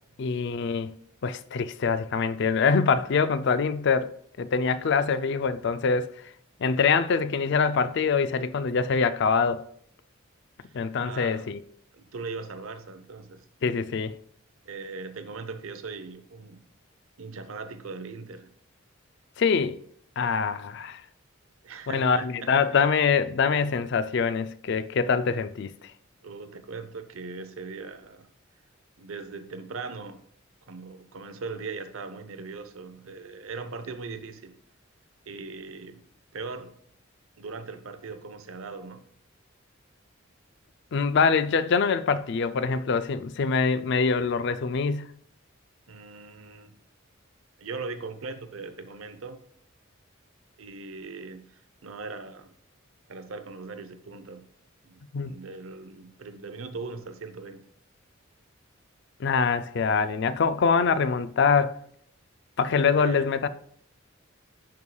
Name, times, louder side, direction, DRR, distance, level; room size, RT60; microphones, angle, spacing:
voice 1, 0.2-0.9 1.2-4.1 4.4-6.1 6.6-9.6 10.7-11.6 13.6-14.2 19.4-19.8 20.2-21.0 21.9-25.7 40.9-45.1 55.1-55.3 59.2-61.8 62.6-63.5, left 5 dB, 55° left, 0.4 m, -24 dB
voice 2, 11.0-11.5 11.9-13.5 14.6-16.6 17.2-18.5 21.6-22.5 26.2-28.3 29.0-30.2 30.6-34.5 35.3-36.0 36.3-36.8 37.4-39.0 45.9-46.7 47.6-49.4 50.6-52.5 53.1-54.5 54.8-57.6 63.0-63.3, right 4 dB, 85° right, 0.7 m, -39 dB
10.5 x 4.8 x 2.3 m
head